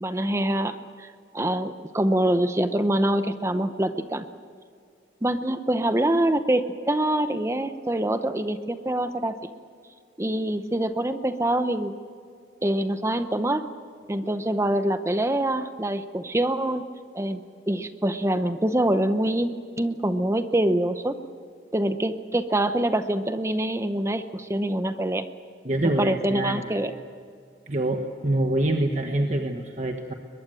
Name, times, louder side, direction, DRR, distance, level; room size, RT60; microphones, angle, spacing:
voice 1, 0.0-1.1 1.3-4.2 5.2-9.4 10.2-11.9 12.6-13.6 14.1-16.8 17.1-21.2 21.7-25.3 26.0-26.9, right 1 dB, 15° right, 10 dB, 0.8 m, -25 dB
voice 2, 25.6-26.6 27.7-30.1, right 1 dB, 40° right, 3 dB, 1.3 m, -25 dB
22.5 x 21.5 x 7.7 m, 2.3 s
head